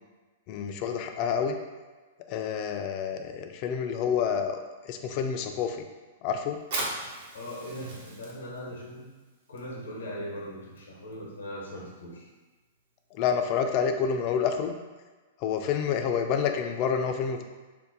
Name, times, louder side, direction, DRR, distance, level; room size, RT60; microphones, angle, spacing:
voice 1, 0.5-1.6 2.3-4.6 4.8-5.8 6.2-6.6 13.1-14.7 15.4-17.4, left 7 dB, 45° left, 5 dB, 0.3 m, -28 dB
Fire, 6.6-13.8, right 2 dB, 65° right, 0.8 m, -41 dB
voice 2, 7.3-9.1 9.5-12.3, equal, 90° left, -2 dB, 0.8 m, -39 dB
2.6 x 2.1 x 3.8 m, 1.3 s
hypercardioid pair, 120°, 0 cm